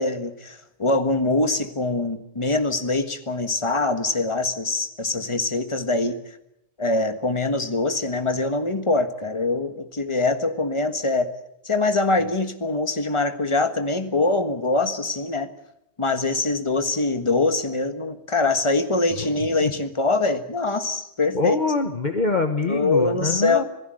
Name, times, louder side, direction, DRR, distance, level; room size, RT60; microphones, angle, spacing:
voice 1, 0.0-6.2 6.8-11.3 11.6-15.5 16.0-21.6 22.7-23.6, left 3 dB, 25° left, 8 dB, 1.7 m, -23 dB
voice 2, 19.2-19.7 21.3-23.6, left 3 dB, 45° left, 7 dB, 1.4 m, -25 dB
27.0 x 17.0 x 7.8 m, 0.80 s
omnidirectional pair, 1.1 m